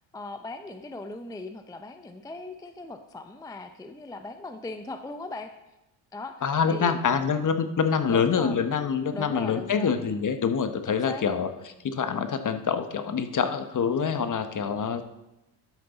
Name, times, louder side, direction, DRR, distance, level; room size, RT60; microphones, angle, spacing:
voice 1, 0.1-5.5 6.1-6.3 6.7-7.0 8.1-8.6 9.1-10.0 10.8-11.3, left 2 dB, 10° left, 8 dB, 0.5 m, -39 dB
voice 2, 6.4-11.5 11.8-15.0, left 6 dB, 40° left, 9 dB, 0.9 m, -26 dB
12.0 x 6.7 x 4.0 m, 0.95 s
supercardioid pair, 75°, 49 cm